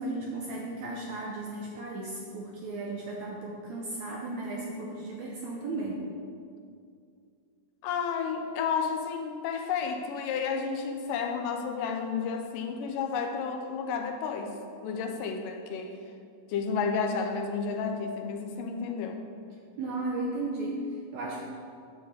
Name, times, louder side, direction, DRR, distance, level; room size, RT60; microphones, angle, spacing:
voice 1, 0.0-6.1 19.8-20.8 21.1-21.4, right 2 dB, 75° right, -2 dB, 1.7 m, -35 dB
voice 2, 7.8-14.6 14.8-16.0 16.5-19.2, left 5 dB, 80° left, 4 dB, 2.2 m, -31 dB
10.0 x 3.8 x 7.1 m, 2.4 s
omnidirectional pair, 4.0 m